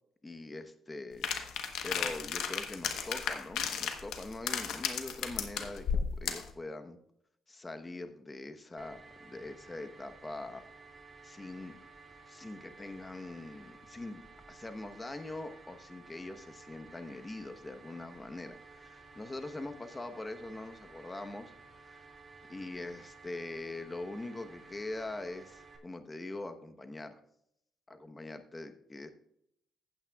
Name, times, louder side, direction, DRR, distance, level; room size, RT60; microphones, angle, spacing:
voice 1, 0.2-7.0 7.5-10.7 11.2-11.8 12.3-22.1 22.5-27.2 27.9-29.1, left 2 dB, 20° left, 8 dB, 1.0 m, -43 dB
sound 1, 1.2-6.5, left 7 dB, 85° left, 1.1 m, -34 dB
sound 2, 8.8-25.8, right 3 dB, 30° right, 2.2 m, -54 dB
15.0 x 8.8 x 2.4 m, 0.74 s
cardioid pair, 90°, 0 cm